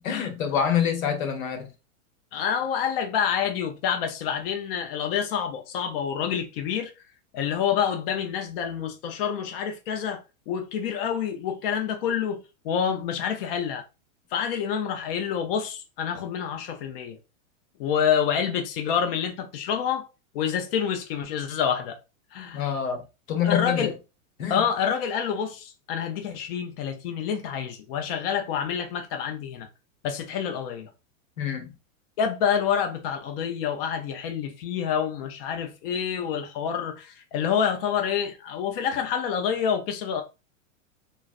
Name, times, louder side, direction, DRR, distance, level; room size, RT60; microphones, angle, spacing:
voice 1, 0.0-1.7 22.5-23.9 24.4-24.6 31.4-31.7, left 8 dB, 90° left, 1.0 m, -26 dB
voice 2, 2.3-6.9 7.3-13.8 14.3-17.2 17.8-20.1 20.3-22.0 22.3-22.7 23.4-23.9 24.5-29.7 30.0-30.9 32.2-40.2, left 8 dB, 45° left, 0.5 m, -27 dB
3.9 x 2.0 x 2.4 m
supercardioid pair, 150°, 40 cm